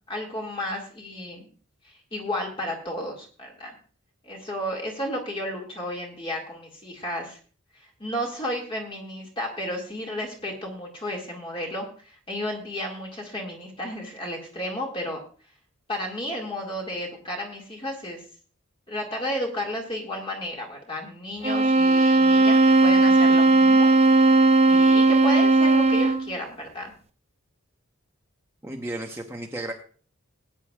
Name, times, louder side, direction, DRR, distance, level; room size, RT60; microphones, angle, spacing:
voice 1, 0.1-1.5 1.8-3.8 4.2-7.4 7.8-15.2 15.9-18.2 18.9-23.9 24.7-26.9, equal, 25° left, -1 dB, 2.1 m, -33 dB
sound 1, 21.4-26.3, right 2 dB, 30° right, 0.6 m, -17 dB
voice 2, 28.6-29.7, right 1 dB, 10° right, 1 dB, 1.0 m, -33 dB
20.0 x 9.1 x 2.4 m, 0.41 s
head